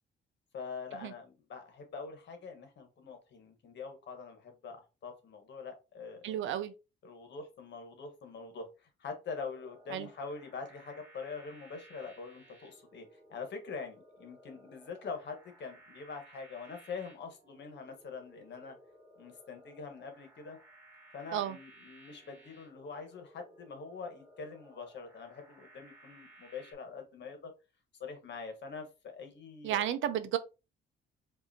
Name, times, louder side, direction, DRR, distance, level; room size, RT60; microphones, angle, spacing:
voice 1, 0.5-6.5 7.0-8.7 9.0-18.8 19.2-20.6 21.1-27.5 28.0-29.9, left 5 dB, 60° left, 1.3 m, -44 dB
voice 2, 6.2-6.7 9.9-10.1 21.3-21.6 29.6-30.4, right 11 dB, 80° right, 0.5 m, -32 dB
sound 1, 9.3-26.7, right 1 dB, 10° right, 2.2 m, -59 dB
4.9 x 2.7 x 2.7 m
cardioid pair, 90°, 20 cm